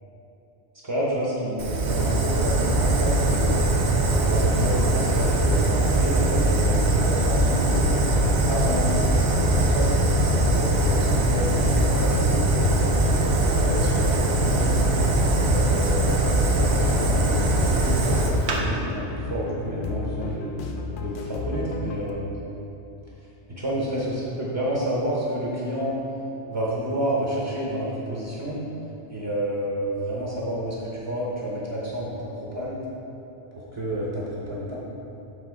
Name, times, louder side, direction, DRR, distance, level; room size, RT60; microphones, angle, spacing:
voice 1, 0.8-3.6 4.2-9.9 10.5-12.6 13.4-14.8 15.3-20.5 21.0-22.3 23.6-26.0 26.5-28.6 29.1-32.8 33.5-34.8, equal, 25° right, -6 dB, 0.9 m, -29 dB
Fire, 1.6-18.6, right 1 dB, 70° right, 1.0 m, -21 dB
sound 1, 8.1-22.1, left 4 dB, 55° left, 0.6 m, -34 dB
7.2 x 3.6 x 4.8 m, 2.9 s
omnidirectional pair, 1.2 m